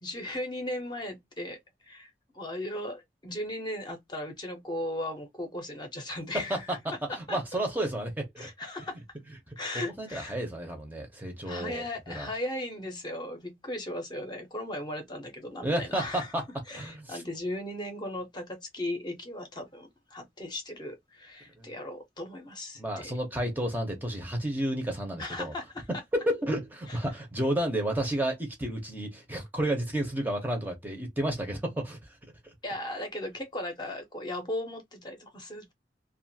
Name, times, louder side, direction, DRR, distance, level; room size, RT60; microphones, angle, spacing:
voice 1, 0.0-6.8 7.1-7.4 8.4-9.0 9.6-10.4 11.4-16.3 16.7-23.1 25.2-25.9 26.9-27.0 32.6-35.7, left 1 dB, 25° left, 0.8 m, -37 dB
voice 2, 7.1-8.5 9.5-12.3 15.6-16.4 16.7-17.2 21.6-21.7 22.8-25.5 26.1-32.2 32.4-32.5, right 1 dB, 10° right, 0.7 m, -31 dB
2.5 x 2.4 x 2.6 m
head